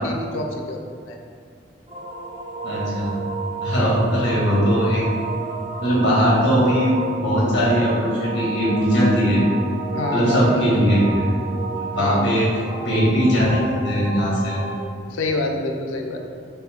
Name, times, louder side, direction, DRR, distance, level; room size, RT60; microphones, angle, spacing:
voice 1, 0.0-1.2 3.8-4.0 9.9-10.6 12.0-12.4 15.1-16.2, left 2 dB, 90° left, 2 dB, 0.4 m, -27 dB
sound 1, 1.9-14.9, right 4 dB, 30° right, 0.5 m, -31 dB
voice 2, 2.6-3.1 3.6-5.2 5.8-6.9 7.2-9.4 10.1-11.3 11.7-12.5 12.8-14.6, equal, 65° left, -7 dB, 1.2 m, -19 dB
5.4 x 2.0 x 2.8 m, 2.2 s
head